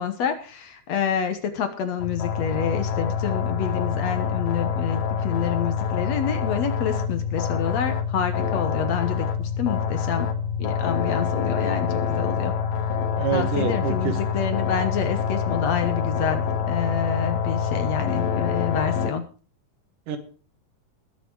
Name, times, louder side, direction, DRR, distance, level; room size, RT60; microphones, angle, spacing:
voice 1, 0.0-10.3 10.6-12.5 13.3-19.2, left 7 dB, 60° left, 8 dB, 2.1 m, -28 dB
sound 1, 2.0-19.1, left 6 dB, 80° left, 3.1 m, -26 dB
voice 2, 13.2-14.2 20.1-20.2, right 7 dB, 75° right, 8 dB, 3.0 m, -26 dB
21.0 x 7.0 x 4.7 m, 0.37 s
omnidirectional pair, 3.8 m